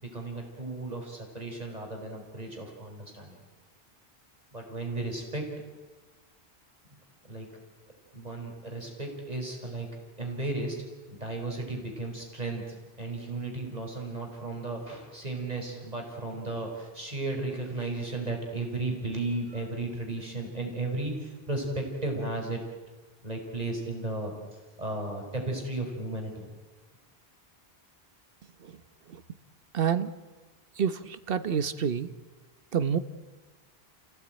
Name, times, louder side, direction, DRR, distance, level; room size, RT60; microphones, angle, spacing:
voice 1, 0.0-3.4 4.5-5.5 7.3-7.6 8.1-9.9 10.2-22.6 23.2-26.5, right 2 dB, 40° right, 1 dB, 5.1 m, -35 dB
voice 2, 29.7-30.1 30.8-32.1 32.7-33.0, right 7 dB, 65° right, 12 dB, 1.2 m, -27 dB
27.5 x 17.0 x 9.0 m, 1.3 s
omnidirectional pair, 1.0 m